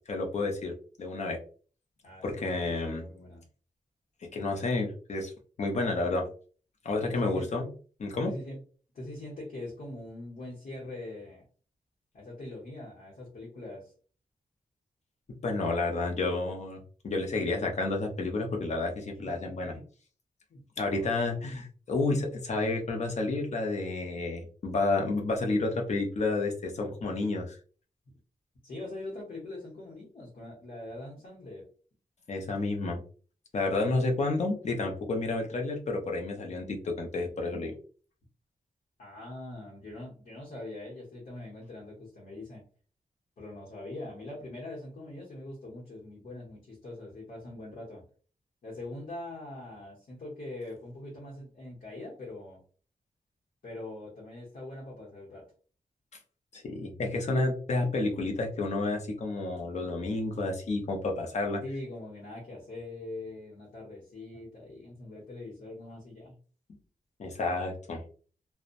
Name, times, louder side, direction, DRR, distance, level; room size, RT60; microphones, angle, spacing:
voice 1, 0.1-0.7 1.0-1.4 2.2-3.1 4.2-5.3 5.6-6.2 6.8-7.7 8.0-8.3 15.4-19.7 20.8-27.6 32.3-33.0 33.5-37.7 56.5-61.6 67.2-68.0, left 2 dB, 50° left, 1 dB, 0.6 m, -30 dB
voice 2, 2.0-3.4 7.1-7.5 8.2-8.6 8.9-11.4 12.1-13.9 19.4-19.8 20.5-21.4 28.6-31.7 39.0-42.6 43.4-48.0 48.6-52.6 53.6-55.5 61.6-66.4, left 2 dB, 75° left, -5 dB, 0.9 m, -43 dB
2.7 x 2.1 x 2.5 m, 0.41 s
wide cardioid pair, 170°, 15 cm